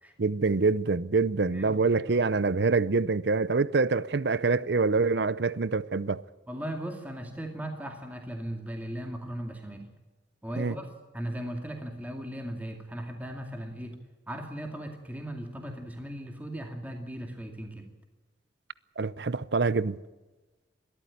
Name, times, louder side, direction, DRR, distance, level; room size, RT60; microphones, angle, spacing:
voice 1, 0.2-6.2 10.6-10.8 19.0-20.0, right 4 dB, 70° right, 0.7 m, -25 dB
voice 2, 1.5-2.2 6.5-9.9 10.4-10.9 11.1-14.0 14.3-17.9, right 1 dB, 10° right, 2.3 m, -38 dB
21.0 x 13.5 x 10.0 m
head